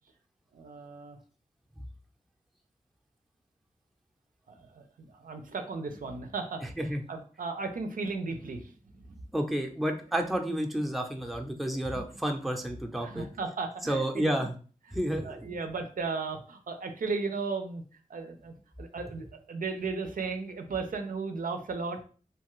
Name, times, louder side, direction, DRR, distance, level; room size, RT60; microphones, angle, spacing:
voice 1, 0.5-1.2 4.5-9.2 11.9-12.0 13.0-14.5 14.9-15.0 15.2-17.8 18.1-22.0, right 4 dB, 80° right, 6 dB, 0.4 m, -36 dB
voice 2, 9.3-13.3 13.9-14.5 14.9-15.5, equal, ahead, 2 dB, 0.5 m, -30 dB
2.8 x 2.3 x 3.0 m, 0.40 s
wide cardioid pair, 55°, 14 cm